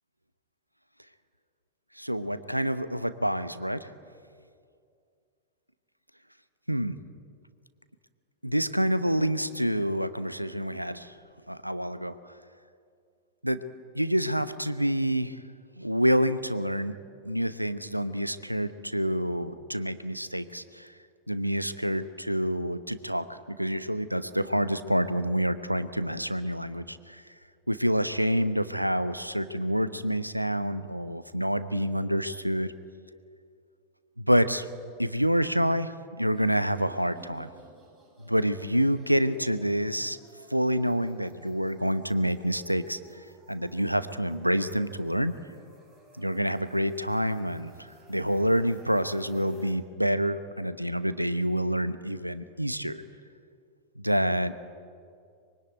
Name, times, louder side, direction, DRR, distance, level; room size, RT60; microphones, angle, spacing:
voice 1, 2.0-3.9 6.7-7.0 8.4-11.1 11.5-12.1 13.4-13.6 13.9-15.4 15.8-16.9 17.2-20.9 21.3-27.2 27.7-32.7 34.2-34.7 35.0-37.5 38.3-40.2 40.5-43.0 43.5-45.3 46.2-53.0 54.0-54.5, equal, 90° right, 13 dB, 1.0 m, -27 dB
sound 1, 36.2-49.7, right 2 dB, 15° right, 7.6 m, -55 dB
24.5 x 23.0 x 9.4 m, 2.3 s
figure-of-eight pair, 90°, 0 cm